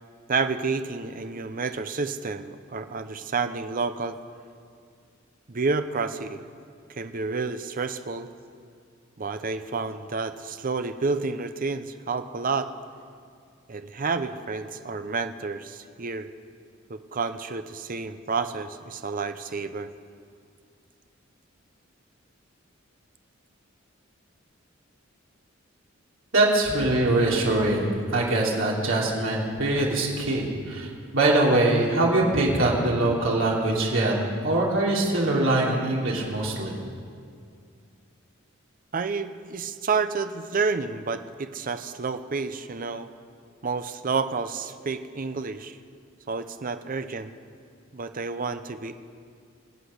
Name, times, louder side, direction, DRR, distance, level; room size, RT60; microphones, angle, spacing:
voice 1, 0.3-4.2 5.5-6.4 6.9-8.3 9.2-12.7 13.7-16.3 16.9-19.9 38.9-43.1 43.6-45.8 46.3-47.3 47.9-48.9, right 4 dB, 45° right, 10 dB, 0.7 m, -30 dB
voice 2, 26.3-34.1 34.4-36.7, right 2 dB, 70° right, -3 dB, 3.1 m, -23 dB
24.0 x 8.2 x 6.6 m, 2.3 s
head